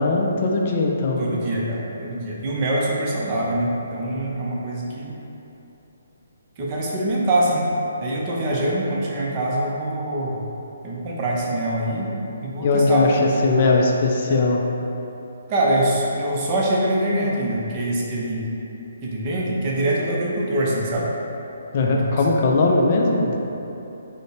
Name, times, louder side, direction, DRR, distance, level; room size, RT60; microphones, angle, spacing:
voice 1, 0.0-1.2 12.6-14.6 21.7-23.4, left 3 dB, 40° left, -1 dB, 0.4 m, -19 dB
voice 2, 1.2-5.2 6.6-7.7 8.0-10.4 10.8-12.1 12.4-13.5 15.5-18.5 19.0-21.1 21.9-22.1, right 1 dB, 30° right, -4 dB, 0.6 m, -24 dB
6.2 x 2.1 x 3.2 m, 2.9 s
figure-of-eight pair, 135°, 0 cm